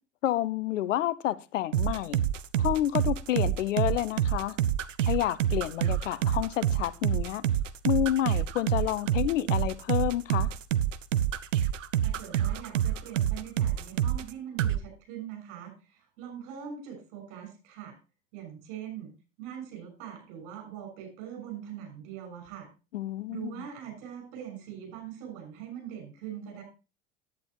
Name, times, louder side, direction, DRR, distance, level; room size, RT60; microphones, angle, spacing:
voice 1, 0.2-2.2 2.6-4.6 5.1-7.4 7.8-10.5 22.9-23.6, left 13 dB, 80° left, 0.7 m, -29 dB
sound 1, 1.7-14.3 14.6-14.8, right 11 dB, 85° right, 0.7 m, -27 dB
voice 2, 12.0-17.9 18.3-19.1 19.4-22.7 23.3-26.6, right 9 dB, 65° right, 6.4 m, -42 dB
10.5 x 9.6 x 3.0 m
hypercardioid pair, 75°, 37 cm